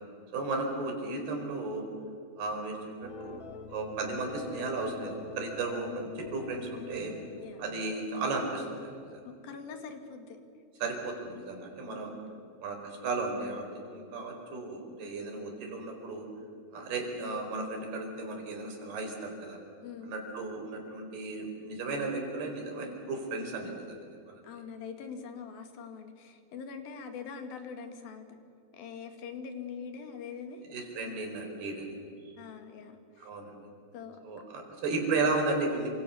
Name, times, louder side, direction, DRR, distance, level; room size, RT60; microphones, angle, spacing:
voice 1, 0.3-1.9 2.4-3.4 3.7-7.1 7.6-9.2 10.8-12.1 12.6-16.3 16.7-19.6 20.0-23.8 24.3-24.4 30.7-32.0 33.2-33.5 34.2-35.9, right 3 dB, 65° right, 3 dB, 6.3 m, -34 dB
sound 1, 3.0-8.1, left 4 dB, 40° left, 1.9 m, -47 dB
voice 2, 9.2-10.4 19.8-20.1 24.4-28.3 28.7-30.6 32.4-33.3 33.9-34.2, left 6 dB, 60° left, 7 dB, 3.8 m, -43 dB
28.5 x 26.5 x 7.1 m, 2.4 s
omnidirectional pair, 5.0 m